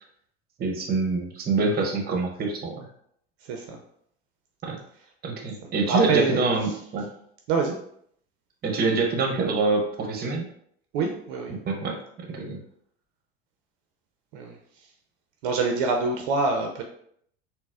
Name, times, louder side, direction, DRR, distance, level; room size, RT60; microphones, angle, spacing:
voice 1, 0.6-2.9 4.6-4.8 5.2-7.1 8.6-10.5 11.5-12.0 12.3-12.6, right 3 dB, 30° right, 3 dB, 0.7 m, -25 dB
voice 2, 3.4-3.8 5.9-6.5 7.5-7.8 10.9-11.6 14.3-14.6 15.4-16.8, right 4 dB, 60° right, 3 dB, 0.5 m, -25 dB
3.9 x 2.0 x 2.3 m, 0.68 s
hypercardioid pair, 85°, 31 cm